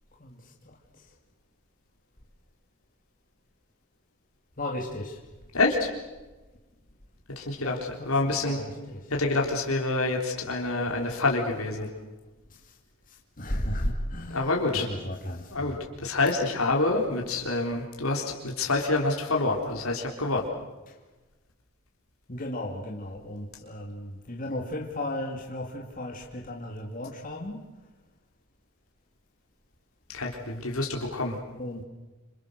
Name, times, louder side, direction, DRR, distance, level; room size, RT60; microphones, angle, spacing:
voice 1, 4.6-5.2 7.6-8.7 13.4-15.8 22.3-27.6 31.6-31.8, left 1 dB, 40° left, 0 dB, 2.4 m, -34 dB
voice 2, 5.5-5.9 7.4-8.6 9.1-11.9 14.3-14.9 15.5-15.8 16.0-20.5 30.1-31.4, left 2 dB, 85° left, 0 dB, 3.7 m, -27 dB
27.5 x 27.0 x 6.7 m, 1.1 s
head